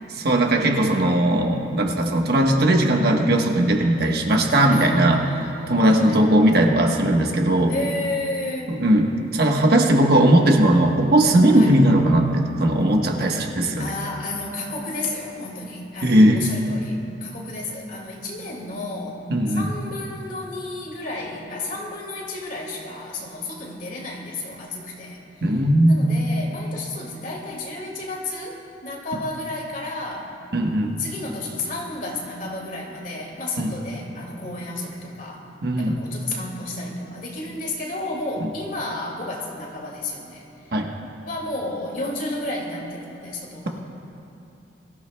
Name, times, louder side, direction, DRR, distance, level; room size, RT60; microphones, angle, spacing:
voice 1, 0.1-5.2 5.7-7.7 8.7-9.1 9.3-13.9 16.0-16.5 19.3-19.7 25.4-26.0 30.5-31.0 33.6-33.7 35.6-36.0 40.7-40.9, right 1 dB, 55° right, 2 dB, 1.2 m, -18 dB
voice 2, 4.7-6.2 7.7-8.8 11.5-11.7 13.8-19.2 19.5-25.4 25.9-30.3 31.0-35.4 35.8-40.7 41.2-43.8, left 2 dB, 45° left, -1 dB, 2.2 m, -32 dB
23.0 x 14.5 x 2.2 m, 2.8 s
head